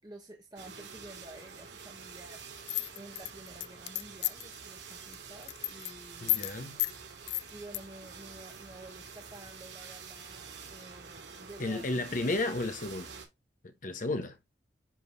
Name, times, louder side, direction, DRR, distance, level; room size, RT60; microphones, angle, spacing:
voice 1, 0.0-6.4 7.5-12.2, right 2 dB, 25° right, 1.2 m, -51 dB
sound 1, 0.6-13.3, right 5 dB, 75° right, 2.4 m, -48 dB
sound 2, 2.7-4.5 4.9-5.2 5.4-5.9 6.3-6.5 6.8-6.9 7.3-7.8, left 19 dB, 65° left, 0.4 m, -31 dB
voice 2, 6.2-6.8 11.6-13.1 13.6-14.4, left 2 dB, 50° left, 1.0 m, -33 dB
10.5 x 3.8 x 2.6 m
head